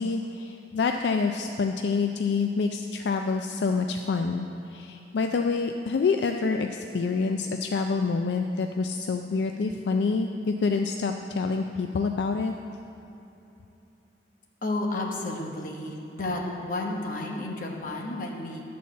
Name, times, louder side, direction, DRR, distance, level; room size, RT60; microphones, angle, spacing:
voice 1, 0.0-12.5, left 4 dB, 75° left, 4 dB, 0.4 m, -27 dB
voice 2, 14.6-18.6, left 2 dB, 50° left, -1 dB, 1.1 m, -32 dB
11.5 x 4.2 x 7.3 m, 2.9 s
head